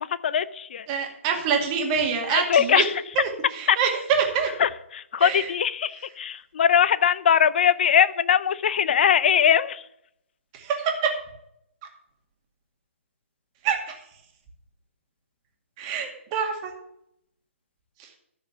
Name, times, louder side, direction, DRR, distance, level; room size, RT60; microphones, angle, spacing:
voice 1, 0.0-0.9 2.3-2.9 3.7-3.8 4.6-9.8, left 8 dB, 50° left, 17 dB, 0.6 m, -21 dB
voice 2, 0.9-2.8 3.2-4.5 5.2-5.5 10.5-11.1 13.6-14.0 15.8-16.7 18.0-18.1, right 6 dB, 25° right, 2 dB, 2.2 m, -26 dB
13.5 x 5.0 x 7.2 m, 0.77 s
hypercardioid pair, 155°, 7 cm